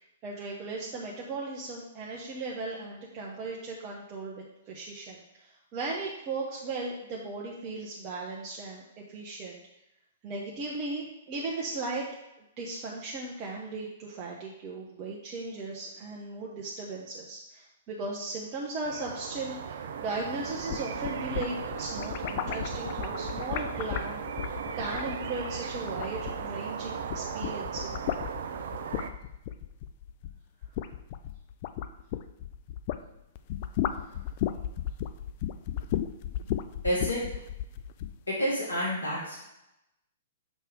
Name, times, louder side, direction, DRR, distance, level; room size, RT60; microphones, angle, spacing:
voice 1, 0.2-8.8 9.1-9.6 10.2-12.1 12.6-28.0, right 3 dB, 35° right, -3 dB, 1.0 m, -37 dB
sound 1, 18.8-29.1, right 7 dB, 65° right, 0.5 m, -37 dB
sound 2, 20.5-26.7 27.0-33.1 33.4-38.2, left 11 dB, 45° left, 0.4 m, -35 dB
voice 2, 36.8-37.2 38.3-39.4, equal, 85° left, -5 dB, 1.8 m, -29 dB
6.6 x 3.2 x 4.7 m, 0.87 s
hypercardioid pair, 115°, 0 cm